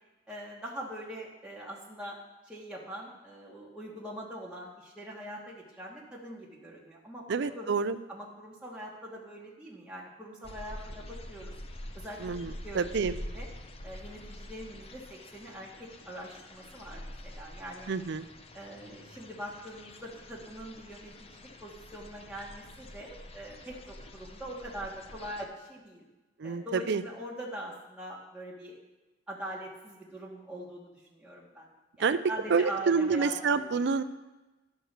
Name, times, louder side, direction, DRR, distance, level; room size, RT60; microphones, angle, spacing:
voice 1, 0.3-2.2 2.4-7.7 8.1-11.5 11.9-13.5 13.8-17.9 18.5-26.0 26.4-28.8 29.3-31.7 32.0-33.8, right 1 dB, 5° right, -5 dB, 1.4 m, -43 dB
voice 2, 7.3-8.0 12.2-13.1 17.9-18.2 26.4-27.0 32.0-32.2 32.5-34.0, right 5 dB, 65° right, 12 dB, 0.5 m, -28 dB
sound 1, 10.4-25.5, left 1 dB, 30° left, 0.7 m, -46 dB
11.5 x 4.7 x 6.6 m, 1.1 s
head